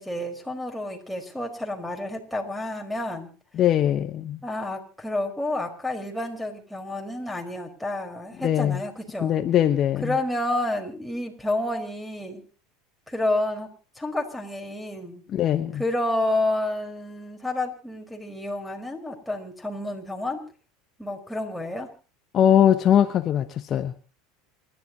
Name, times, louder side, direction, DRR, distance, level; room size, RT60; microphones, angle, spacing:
voice 1, 0.0-3.3 4.4-9.4 10.0-12.4 13.1-13.7 13.9-15.2 15.7-20.4 21.0-21.9, left 1 dB, 5° left, 5.0 m, -29 dB
voice 2, 3.6-4.4 8.4-8.8 9.2-10.1 15.3-15.8 22.3-23.9, left 10 dB, 40° left, 1.2 m, -21 dB
28.0 x 12.5 x 3.0 m
hypercardioid pair, 100°, 0 cm